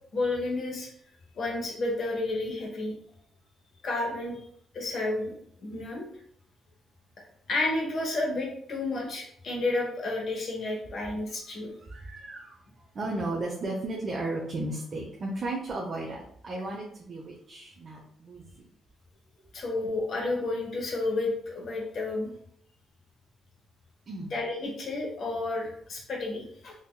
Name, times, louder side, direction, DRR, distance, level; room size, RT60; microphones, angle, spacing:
voice 1, 0.1-0.9 1.3-2.9 3.8-4.4 4.7-6.1 7.5-11.7 19.5-22.3 24.3-26.7, left 2 dB, 55° left, -1 dB, 1.2 m, -31 dB
voice 2, 11.8-12.6 12.9-18.7 24.1-24.3, right 2 dB, 40° right, -2 dB, 0.7 m, -35 dB
3.9 x 2.8 x 2.2 m, 0.66 s
cardioid pair, 90°, 0 cm